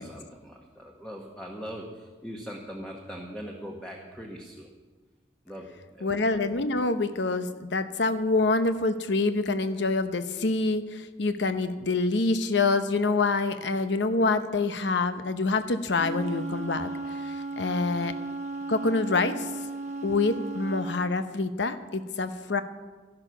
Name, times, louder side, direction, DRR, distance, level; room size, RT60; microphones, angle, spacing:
voice 1, 0.0-4.7 5.5-6.1 17.9-18.1, equal, 5° left, -1 dB, 1.1 m, -41 dB
voice 2, 6.0-16.9 17.2-18.1 18.7-19.5 20.0-22.6, left 3 dB, 70° left, 10 dB, 0.8 m, -26 dB
Wind instrument woodwind instrument, 15.9-21.0, right 3 dB, 40° right, 1.0 m, -35 dB
13.0 x 11.5 x 6.0 m, 1.4 s
head